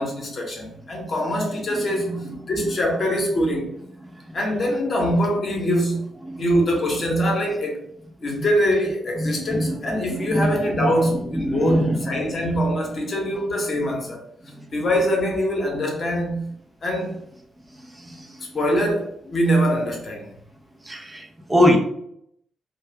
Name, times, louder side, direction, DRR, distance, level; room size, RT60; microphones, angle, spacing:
voice 1, 0.0-3.7 4.3-6.0 6.4-7.8 8.2-14.2 14.7-16.5 16.8-17.1 18.5-20.3, equal, 45° left, 0.9 m, -23 dB
voice 2, 1.7-2.4 3.0-3.2 6.2-6.5 8.4-8.5 9.2-12.3 14.5-14.6 18.0-18.4 20.8-21.8, equal, 20° right, 0.6 m, -24 dB
2.6 x 2.2 x 3.3 m
hypercardioid pair, 40°, 0 cm